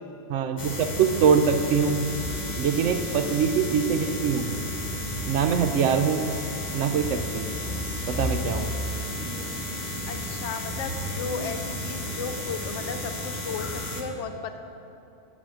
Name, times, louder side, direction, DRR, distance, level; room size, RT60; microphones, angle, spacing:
voice 1, 0.3-2.0 2.6-4.5 5.3-6.2 6.7-7.5 8.1-8.7, right 6 dB, 80° right, 7 dB, 1.0 m, -23 dB
sound 1, 0.6-14.0, left 1 dB, 40° left, 1.0 m, -32 dB
voice 2, 10.1-14.6, left 6 dB, 75° left, 7 dB, 0.9 m, -35 dB
10.0 x 4.2 x 7.6 m, 2.8 s
omnidirectional pair, 1.2 m